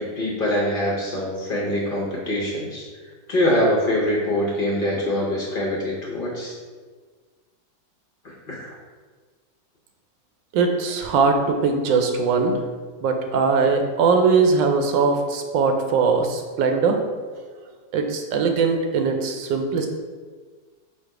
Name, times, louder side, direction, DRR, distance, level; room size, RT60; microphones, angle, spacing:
voice 1, 0.0-2.8 3.3-6.5 8.2-8.7, left 1 dB, 60° left, -4 dB, 0.5 m, -24 dB
voice 2, 10.5-12.6 13.0-17.0 17.9-19.9, right 4 dB, 85° right, 4 dB, 1.3 m, -20 dB
4.8 x 2.2 x 4.7 m, 1.5 s
omnidirectional pair, 1.9 m